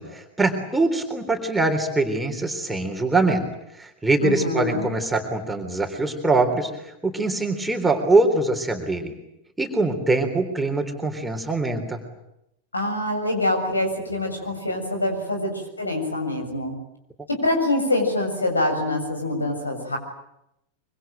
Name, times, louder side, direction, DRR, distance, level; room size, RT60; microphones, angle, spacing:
voice 1, 0.0-3.4 3.8-6.7 7.0-9.2 9.6-12.0, right 2 dB, 5° right, 3 dB, 3.6 m, -23 dB
voice 2, 4.2-4.9 12.7-16.7 17.4-20.0, left 1 dB, 80° left, 5 dB, 7.3 m, -25 dB
25.5 x 25.0 x 9.0 m, 0.82 s
figure-of-eight pair, 90°, 0 cm